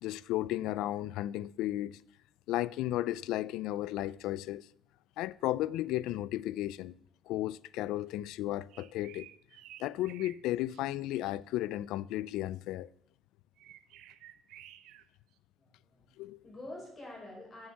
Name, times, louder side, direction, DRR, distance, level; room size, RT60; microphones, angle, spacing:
voice 1, 0.0-2.0 2.5-4.7 5.2-6.9 7.3-9.3 9.8-12.9 16.2-16.4, left 14 dB, 75° left, 0.3 m, -34 dB
sound 1, 8.7-10.4 10.7-11.4 13.6-15.0, right 13 dB, 75° right, 0.7 m, -53 dB
voice 2, 15.6-17.7, left 1 dB, 25° left, 5.4 m, -47 dB
8.7 x 7.5 x 7.3 m
cardioid pair, 140°, 0 cm